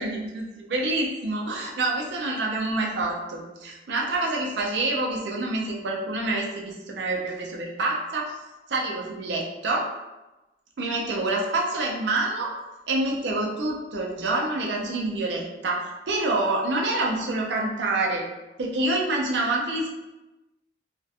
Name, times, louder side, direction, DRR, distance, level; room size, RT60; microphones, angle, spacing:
voice 1, 0.0-8.4 8.7-9.9 10.8-12.5 12.9-18.3 18.6-19.9, right 2 dB, 75° right, -1 dB, 0.5 m, -27 dB
2.4 x 2.1 x 2.6 m, 1.1 s
head